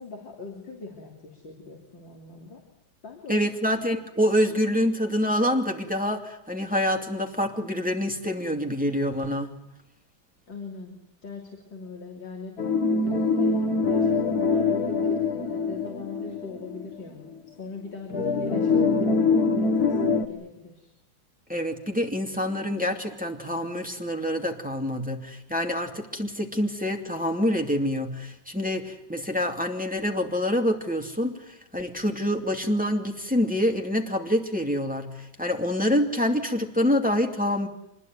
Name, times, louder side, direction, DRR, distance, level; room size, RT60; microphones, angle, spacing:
voice 1, 0.0-2.6 3.0-3.5 10.5-11.0 11.2-12.5 12.9-19.0 19.7-20.9, left 3 dB, 65° left, 1 dB, 3.8 m, -40 dB
voice 2, 3.3-9.5 21.5-37.7, equal, 5° right, 3 dB, 2.6 m, -26 dB
sound 1, 12.6-16.9 17.3-17.4 18.1-20.3, left 4 dB, 50° left, 2.3 m, -24 dB
25.5 x 21.0 x 9.5 m, 0.86 s
omnidirectional pair, 2.2 m